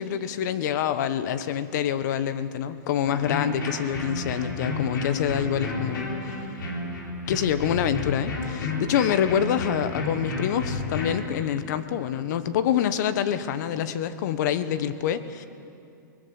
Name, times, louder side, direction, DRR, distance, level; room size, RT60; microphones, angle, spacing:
voice 1, 0.0-6.4 7.3-15.5, left 9 dB, 60° left, 12 dB, 1.3 m, -26 dB
sound 1, 3.1-11.2, left 3 dB, 80° left, 5.0 m, -31 dB
22.0 x 20.0 x 6.7 m, 2.5 s
hypercardioid pair, 130°, 11 cm